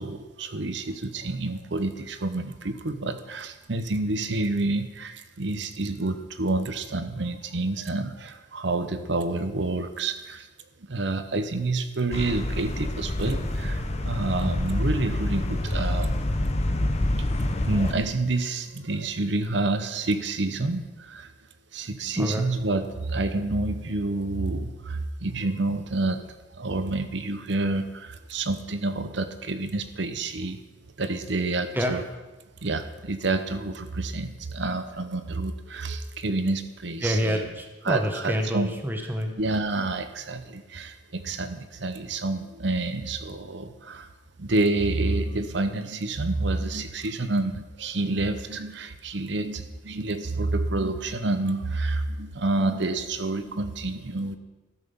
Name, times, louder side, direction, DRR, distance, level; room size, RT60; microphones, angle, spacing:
voice 1, 0.0-10.5 10.9-16.3 17.2-17.3 17.7-21.3 21.7-26.2 26.5-30.6 31.0-32.0 32.6-37.4 37.8-38.7 39.4-44.1 44.4-54.4, right 2 dB, 60° right, 10 dB, 0.9 m, -28 dB
sound 1, 12.1-17.9, left 1 dB, 35° left, 0.9 m, -27 dB
voice 2, 22.2-22.5 31.7-31.9 37.0-39.3, equal, 10° right, 4 dB, 1.1 m, -27 dB
13.0 x 6.1 x 7.0 m, 1.2 s
head